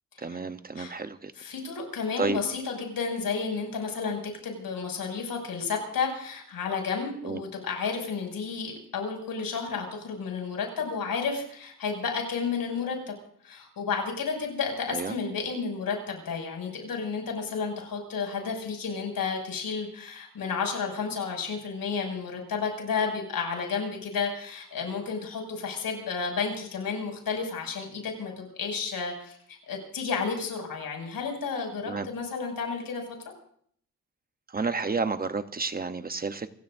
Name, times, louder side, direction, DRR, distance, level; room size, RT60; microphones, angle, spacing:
voice 1, 0.2-1.3 2.2-2.4 7.2-7.4 14.9-15.1 31.9-32.1 34.5-36.5, right 4 dB, 25° right, 9 dB, 0.8 m, -31 dB
voice 2, 1.4-13.1 13.4-33.0, left 5 dB, 90° left, 3 dB, 6.4 m, -32 dB
28.5 x 17.0 x 2.6 m, 0.63 s
wide cardioid pair, 160°, 34 cm